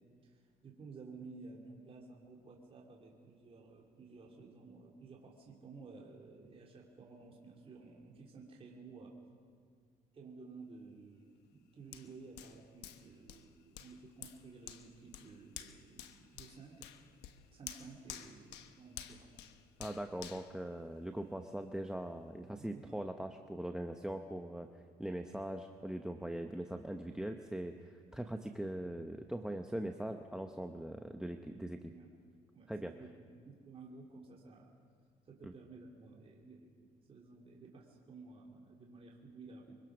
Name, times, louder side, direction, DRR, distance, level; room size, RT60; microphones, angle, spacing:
voice 1, 0.0-9.2 10.1-16.9 17.5-19.3 22.5-23.0 31.9-32.1 32.5-34.7 35.3-36.8 37.1-39.8, right 4 dB, 35° right, -1 dB, 2.9 m, -54 dB
Hands, 11.9-21.4 21.9-22.0, left 11 dB, 90° left, 1.2 m, -52 dB
voice 2, 19.8-24.7 25.0-31.9 32.7-32.9 35.4-35.5, right 1 dB, 5° right, 6 dB, 0.9 m, -41 dB
24.0 x 23.0 x 6.1 m, 2.1 s
cardioid pair, 110°, 17 cm